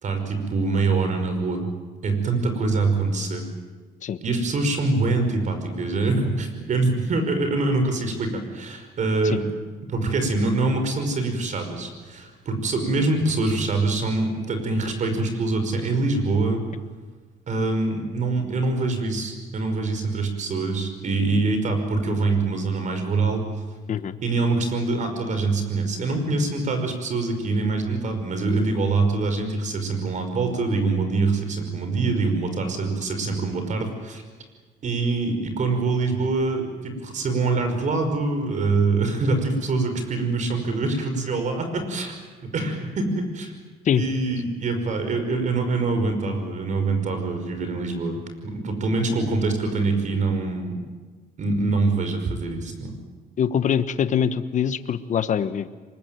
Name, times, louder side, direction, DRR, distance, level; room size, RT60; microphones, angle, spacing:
voice 1, 0.0-1.7 2.0-3.5 4.2-9.5 9.9-16.6 17.5-23.4 24.2-34.2 34.8-42.2 42.4-43.5 44.0-50.7 51.4-52.9, right 3 dB, 45° right, 7 dB, 5.5 m, -24 dB
voice 2, 53.4-55.7, left 8 dB, 45° left, 11 dB, 1.3 m, -23 dB
24.0 x 21.5 x 9.3 m, 1.4 s
cardioid pair, 110°, 17 cm